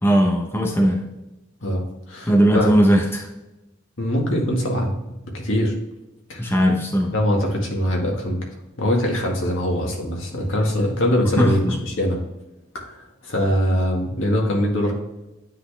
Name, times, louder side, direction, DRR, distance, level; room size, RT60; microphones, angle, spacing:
voice 1, 0.0-1.0 2.3-3.3 6.4-7.1 11.4-11.8, equal, 10° left, 1 dB, 0.7 m, -18 dB
voice 2, 1.6-2.7 4.0-4.9 5.3-5.7 6.3-6.5 7.1-8.4 8.8-12.2 12.7-14.9, equal, 70° left, 0 dB, 1.8 m, -22 dB
9.2 x 4.0 x 3.4 m, 0.98 s
head